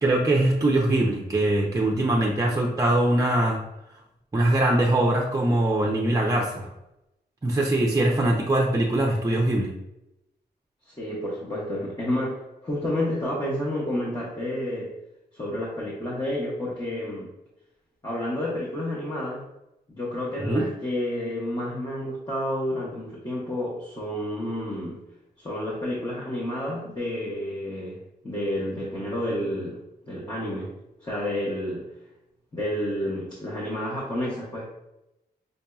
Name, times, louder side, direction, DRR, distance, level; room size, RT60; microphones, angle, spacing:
voice 1, 0.0-3.6 4.3-6.7 7.4-9.7 20.4-20.6, right 1 dB, 20° right, -2 dB, 0.5 m, -22 dB
voice 2, 10.9-14.9 15.3-17.3 18.0-19.4 19.9-25.0 25.4-30.7 31.0-31.9 32.5-34.6, left 1 dB, 25° left, -6 dB, 1.0 m, -30 dB
5.3 x 2.6 x 2.3 m, 0.88 s
wide cardioid pair, 95°, 17 cm